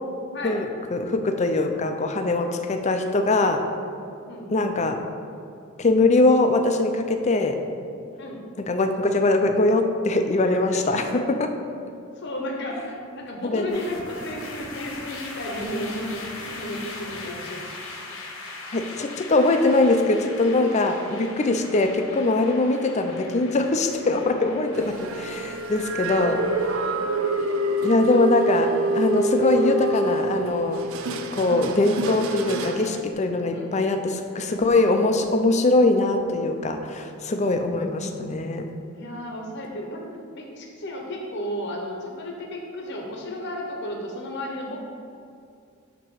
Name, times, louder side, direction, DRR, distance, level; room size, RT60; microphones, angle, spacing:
voice 1, 0.4-3.6 4.5-5.0 5.8-7.6 8.6-11.5 13.4-13.8 18.7-26.4 27.8-30.9 31.3-38.7, left 2 dB, 35° left, 5 dB, 0.5 m, -22 dB
voice 2, 4.3-4.7 8.2-8.4 10.7-11.2 12.2-17.6 33.5-34.0 37.6-38.4 38.9-40.0 40.3-44.8, left 1 dB, 55° left, -1 dB, 0.9 m, -34 dB
sound 1, 13.7-32.9, left 2 dB, 85° left, 1.2 m, -41 dB
sound 2, 24.7-33.0, right 2 dB, 75° right, 0.5 m, -27 dB
8.7 x 3.0 x 6.2 m, 2.5 s
head